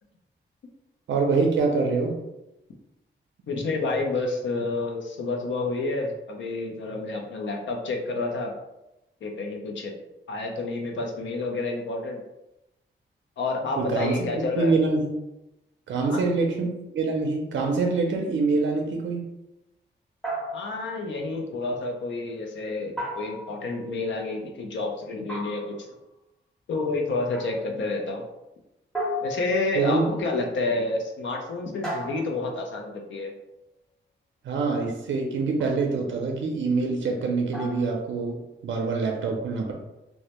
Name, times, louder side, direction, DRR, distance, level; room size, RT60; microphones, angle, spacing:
voice 1, 1.1-2.1 13.8-15.1 15.9-19.2 29.7-30.0 34.4-39.7, right 4 dB, 75° right, 1 dB, 0.4 m, -25 dB
voice 2, 3.5-8.5 9.2-9.9 10.3-12.2 13.4-14.7 16.1-16.2 20.5-25.8 26.7-28.2 29.2-33.3, left 3 dB, 75° left, 2 dB, 0.5 m, -29 dB
sound 1, 20.2-21.0 23.0-23.8 25.3-25.9 27.3-27.7 28.9-29.9 31.8-32.6 35.6-35.9 37.5-38.0, equal, 5° left, 0.6 m, -34 dB
2.1 x 2.1 x 2.8 m, 0.92 s
wide cardioid pair, 125°, 20 cm